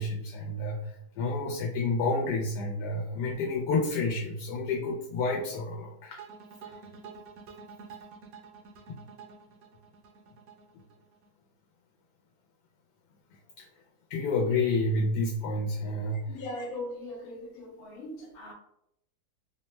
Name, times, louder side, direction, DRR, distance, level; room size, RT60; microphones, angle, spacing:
voice 1, 0.0-6.2 6.7-6.8 13.6-13.7 14.1-16.2, left 2 dB, 85° left, -1 dB, 1.2 m, -29 dB
sound 1, 6.2-11.3, right 5 dB, 70° right, 0.9 m, -48 dB
voice 2, 16.0-18.5, left 1 dB, 60° left, 0 dB, 0.6 m, -40 dB
2.9 x 2.1 x 3.0 m, 0.77 s
omnidirectional pair, 1.7 m